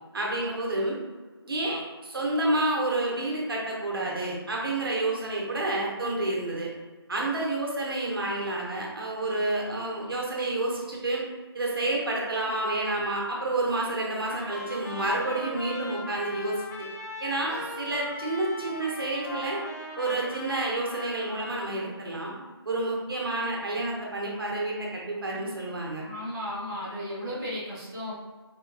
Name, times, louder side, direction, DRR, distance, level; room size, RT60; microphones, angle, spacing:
voice 1, 0.1-1.0 1.4-6.7 7.1-11.2 11.5-16.9 17.2-19.6 20.0-22.3 22.6-26.0, right 2 dB, 55° right, -2 dB, 0.9 m, -29 dB
Trumpet, 14.2-21.6, left 2 dB, 40° left, 0.6 m, -39 dB
voice 2, 26.0-28.1, left 1 dB, 10° right, -14 dB, 0.5 m, -34 dB
4.4 x 2.3 x 2.5 m, 1.4 s
figure-of-eight pair, 160°, 14 cm